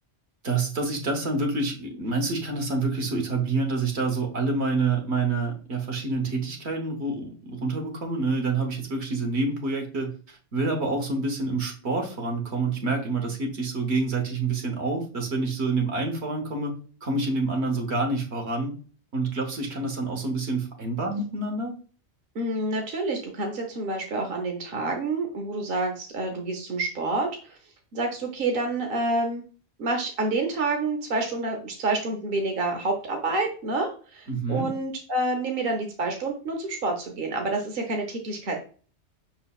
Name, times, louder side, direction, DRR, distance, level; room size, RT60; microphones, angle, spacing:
voice 1, 0.4-16.7 17.0-18.7 19.1-21.8 34.3-34.7, right 3 dB, 75° right, 2 dB, 1.3 m, -27 dB
voice 2, 22.3-27.6 27.9-29.4 29.8-38.6, right 2 dB, 60° right, 3 dB, 1.0 m, -28 dB
5.5 x 3.9 x 2.3 m, 0.39 s
omnidirectional pair, 1.1 m